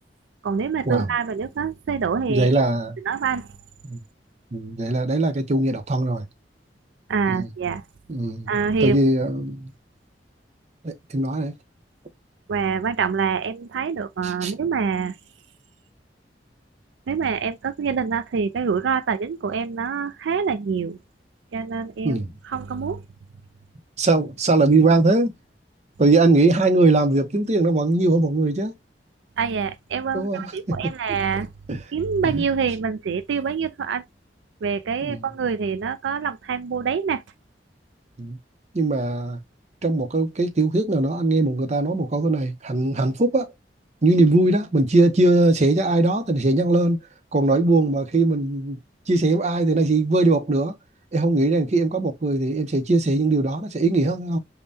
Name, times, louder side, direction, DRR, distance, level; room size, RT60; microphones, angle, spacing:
voice 1, 0.4-2.5 3.0-3.5 7.1-7.8 8.5-9.0 12.5-15.2 17.1-21.0 21.5-23.0 29.4-31.5 31.9-34.0 34.6-37.2, right 6 dB, 85° right, 0.4 m, -25 dB
voice 2, 2.3-3.0 3.8-4.0 4.5-6.2 7.3-7.5 8.1-8.5 8.8-9.7 10.8-11.5 14.2-14.5 22.0-22.3 24.0-25.3 26.0-28.7 30.1-30.5 31.7-31.8 32.2-32.4 35.0-35.2 38.2-38.4 38.7-39.4 39.8-43.5 44.0-47.0 47.3-48.8 49.1-50.8 51.1-54.4, right 2 dB, 40° right, 0.7 m, -20 dB
5.4 x 2.2 x 2.7 m
head